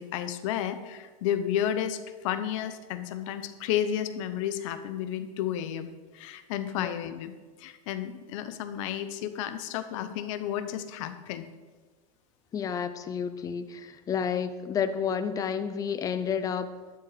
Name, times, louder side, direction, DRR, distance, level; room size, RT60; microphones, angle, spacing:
voice 1, 0.0-7.3 7.6-11.5, left 10 dB, 60° left, 11 dB, 0.9 m, -32 dB
voice 2, 12.5-16.7, left 7 dB, 20° left, 11 dB, 0.6 m, -30 dB
12.0 x 9.5 x 4.2 m, 1.4 s
supercardioid pair, 150°, 19 cm